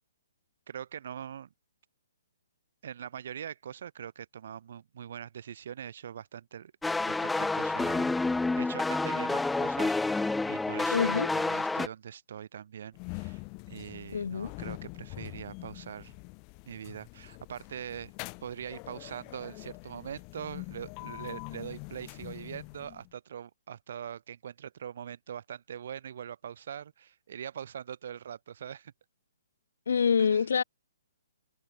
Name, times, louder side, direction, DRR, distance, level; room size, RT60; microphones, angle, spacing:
voice 1, 0.7-1.5 2.8-6.7 7.1-8.1 8.5-13.4 13.7-16.2 16.7-18.1 18.4-28.9 30.2-30.4, right 9 dB, 50° right, 4.4 m, -42 dB
sound 1, 6.8-11.9, left 3 dB, 5° left, 0.9 m, -29 dB
voice 2, 10.9-11.3 14.1-14.5 29.9-30.6, left 6 dB, 60° left, 2.3 m, -26 dB
sound 2, 12.9-23.1, left 39 dB, 30° left, 1.8 m, -44 dB
figure-of-eight pair, 125°, 0 cm